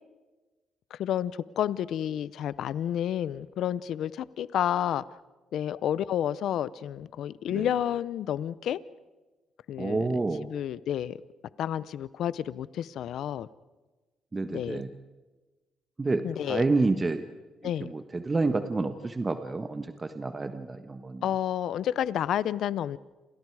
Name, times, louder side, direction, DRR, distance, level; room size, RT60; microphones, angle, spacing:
voice 1, 0.9-5.2 5.5-8.8 9.7-11.2 11.6-13.5 14.5-14.8 16.2-16.6 17.6-17.9 21.2-23.0, left 10 dB, 75° left, 18 dB, 0.7 m, -30 dB
voice 2, 9.8-10.5 14.3-14.9 16.0-17.2 17.8-21.2, right 3 dB, 25° right, 8 dB, 1.4 m, -29 dB
29.0 x 27.0 x 4.9 m, 1.2 s
cardioid pair, 90°, 0 cm